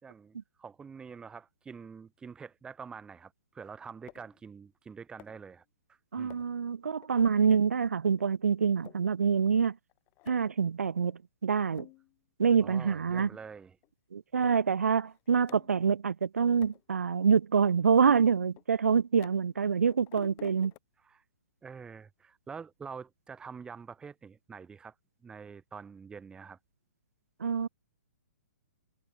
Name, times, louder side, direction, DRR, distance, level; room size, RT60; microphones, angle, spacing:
voice 1, 0.0-5.6 5.9-6.4 12.6-13.7 21.0-21.2 21.6-24.9 25.2-26.6, right 6 dB, 10° right, 3.3 m, -46 dB
sound 1, 4.1-4.4 5.2-5.5 6.3-6.6 7.0-7.1 7.5-7.7 8.2-8.3 8.7-9.0 9.6-9.7 9.9-10.6 11.1-11.2 11.6-12.2 12.6-12.7 13.0-13.5 13.8-13.9 14.4-14.6 14.9-15.9 16.6-16.8 17.3-17.4 17.9-19.6 19.9-20.8, left 23 dB, 30° left, 5.6 m, -53 dB
voice 2, 6.1-9.8 10.3-11.9 12.4-13.3 14.1-20.7 27.4-27.7, right 6 dB, 80° right, 1.0 m, -26 dB
hypercardioid pair, 135°, 8 cm